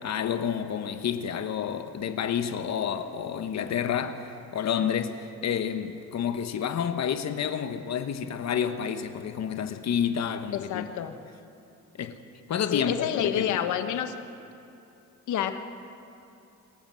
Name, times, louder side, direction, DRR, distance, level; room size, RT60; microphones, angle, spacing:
voice 1, 0.0-10.9 12.0-12.2 12.5-13.6, left 8 dB, 60° left, 1.1 m, -29 dB
voice 2, 10.5-11.1 12.7-14.1 15.3-15.5, left 10 dB, 80° left, 1.3 m, -28 dB
26.5 x 13.0 x 7.5 m
cardioid pair, 90°, 30 cm